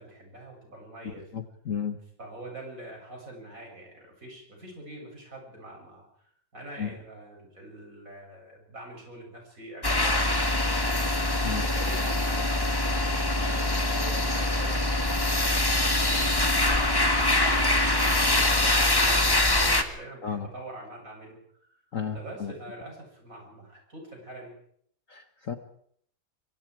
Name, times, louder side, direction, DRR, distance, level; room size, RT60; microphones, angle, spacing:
voice 1, 0.0-1.3 2.2-10.9 11.5-15.5 16.0-19.2 19.5-21.8 22.1-24.5, right 1 dB, 40° right, 0 dB, 8.3 m, -44 dB
voice 2, 1.0-2.0 6.8-6.9 11.4-11.6 20.2-20.5 21.9-22.5 25.1-25.6, left 7 dB, 45° left, 7 dB, 1.5 m, -33 dB
sound 1, 9.8-19.8, left 1 dB, 15° left, 1.4 m, -24 dB
25.0 x 24.5 x 4.8 m, 0.65 s
omnidirectional pair, 2.1 m